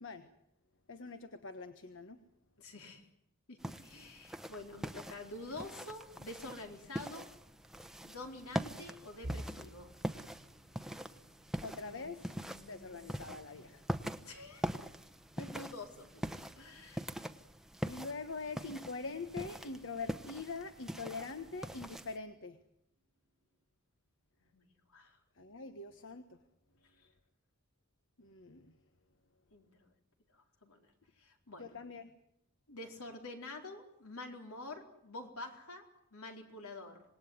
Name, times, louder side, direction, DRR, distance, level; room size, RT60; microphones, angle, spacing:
voice 1, 0.9-2.2 11.6-12.3 12.7-13.9 17.8-22.6 25.4-26.4 28.2-28.7 31.6-32.1, left 4 dB, 60° left, 9 dB, 1.4 m, -44 dB
voice 2, 2.6-3.0 3.5-7.3 8.0-9.9 11.8-13.1 14.2-14.6 15.4-17.0 24.5-24.7 24.9-25.2 29.5-29.9 30.3-30.9 31.2-31.7 32.7-35.8 36.1-37.0, left 2 dB, 80° left, 4 dB, 4.2 m, -48 dB
sound 1, 3.6-22.2, equal, ahead, 1.0 m, -43 dB
sound 2, 9.2-21.1 21.5-21.8 22.1-22.3 23.2-23.6, right 1 dB, 35° right, 1.3 m, -55 dB
26.5 x 19.5 x 9.6 m, 0.77 s
head